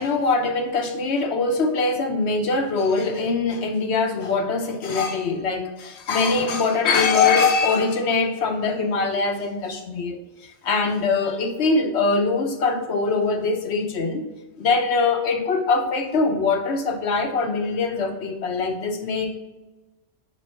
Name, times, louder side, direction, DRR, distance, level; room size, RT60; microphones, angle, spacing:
voice 1, 0.0-14.2 14.6-19.3, left 4 dB, 70° left, 5 dB, 1.2 m, -22 dB
6.2 x 5.0 x 4.4 m, 1.1 s
omnidirectional pair, 1.2 m